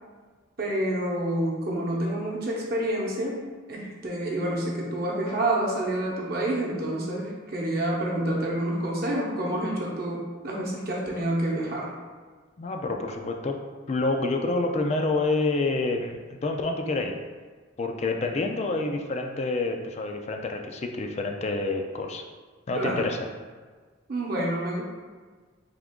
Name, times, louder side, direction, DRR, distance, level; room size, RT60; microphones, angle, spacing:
voice 1, 0.6-3.4 3.7-11.9 22.7-23.1 24.1-24.8, right 1 dB, 55° right, -3 dB, 0.8 m, -28 dB
voice 2, 12.6-13.6 13.9-17.2 17.8-22.2 22.7-23.3, left 3 dB, 35° left, 4 dB, 0.3 m, -28 dB
3.6 x 2.9 x 3.6 m, 1.4 s
head